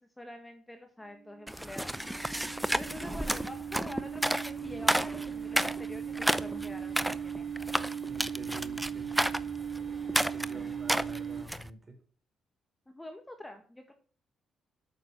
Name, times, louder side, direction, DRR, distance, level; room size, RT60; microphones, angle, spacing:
voice 1, 0.2-2.0 2.7-7.5 10.5-10.7 12.9-13.9, left 1 dB, 10° left, 5 dB, 1.7 m, -46 dB
sound 1, 1.2-11.4, right 7 dB, 80° right, 1.8 m, -38 dB
sound 2, 1.5-11.7, right 1 dB, 5° right, 0.6 m, -32 dB
voice 2, 8.0-9.1 10.1-11.9, right 1 dB, 30° right, 4 dB, 4.5 m, -48 dB
8.8 x 6.6 x 6.1 m, 0.42 s
cardioid pair, 90°, 0 cm